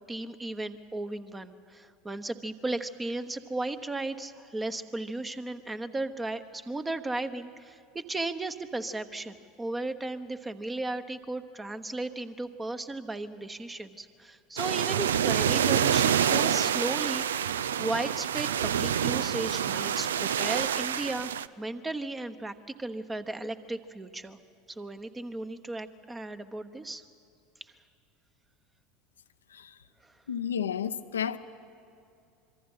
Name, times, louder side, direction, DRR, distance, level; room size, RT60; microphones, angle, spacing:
voice 1, 0.1-22.5 22.8-24.4 24.7-27.0 30.0-30.1, right 2 dB, 15° right, 1.2 m, -35 dB
sound 1, 14.6-21.4, right 9 dB, 75° right, 0.4 m, -27 dB
voice 2, 30.3-31.4, left 8 dB, 80° left, 0.7 m, -32 dB
25.5 x 23.5 x 5.7 m
figure-of-eight pair, 75°, 0 cm